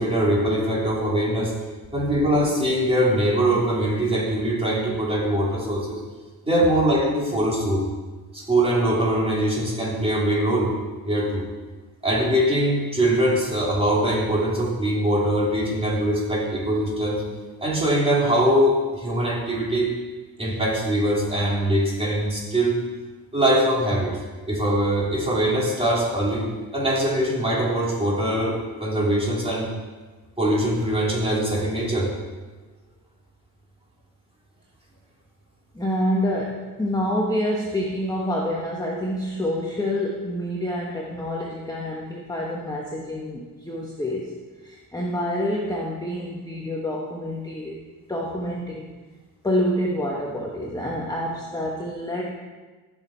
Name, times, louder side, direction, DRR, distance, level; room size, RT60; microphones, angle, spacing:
voice 1, 0.0-1.5 1.9-6.0 6.5-7.8 8.3-10.7 11.0-11.4 12.0-17.2 17.6-19.9 20.4-22.8 23.3-24.2 24.5-29.7 30.4-32.1, right 1 dB, 15° right, -5 dB, 3.7 m, -22 dB
voice 2, 35.7-44.3 44.6-47.8 48.1-48.9 49.4-52.3, left 1 dB, 10° left, -2 dB, 1.2 m, -27 dB
14.5 x 6.3 x 4.5 m, 1.3 s
cardioid pair, 100°, 37 cm